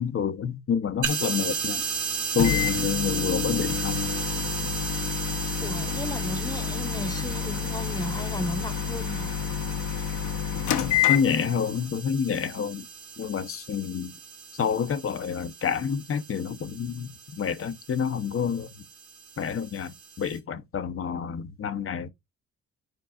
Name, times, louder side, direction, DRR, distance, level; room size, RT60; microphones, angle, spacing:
voice 1, 0.0-1.8 2.3-4.1 11.1-12.9 13.2-14.1 14.5-18.7 19.4-22.1, left 7 dB, 45° left, 0.8 m, -28 dB
sound 1, 1.0-20.4, right 6 dB, 90° right, 2.2 m, -36 dB
Microwave oven, 2.4-11.8, left 9 dB, 80° left, 1.1 m, -28 dB
voice 2, 5.6-9.3, left 1 dB, 10° left, 1.1 m, -35 dB
10.5 x 4.6 x 2.4 m
cardioid pair, 90°, 30 cm